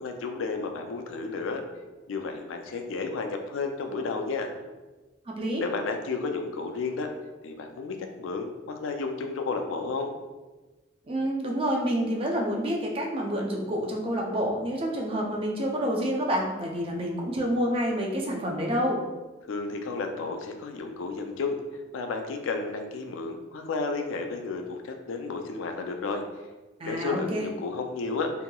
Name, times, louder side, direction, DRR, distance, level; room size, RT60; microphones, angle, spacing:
voice 1, 0.0-1.6 2.1-4.5 5.6-7.1 7.4-10.1 19.5-21.6 21.9-26.2 26.8-28.3, left 4 dB, 80° left, 5 dB, 0.4 m, -32 dB
voice 2, 5.3-5.6 11.1-19.0 26.8-27.5, equal, 30° right, -1 dB, 0.4 m, -28 dB
2.9 x 2.7 x 2.2 m, 1.2 s
head